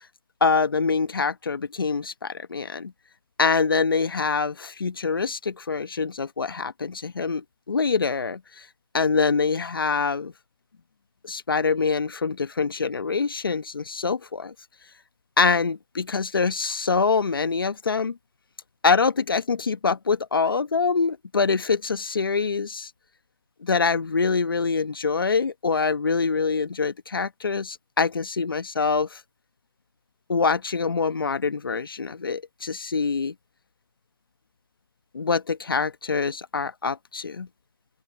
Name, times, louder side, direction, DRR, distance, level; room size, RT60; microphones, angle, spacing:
voice 1, 0.4-2.9 3.4-8.6 8.9-10.3 11.2-14.5 15.4-18.2 18.8-22.9 23.6-29.2 30.3-33.3 35.1-37.5, left 4 dB, 70° left, 1.3 m, -25 dB
open air
hypercardioid pair, 165°, 12 cm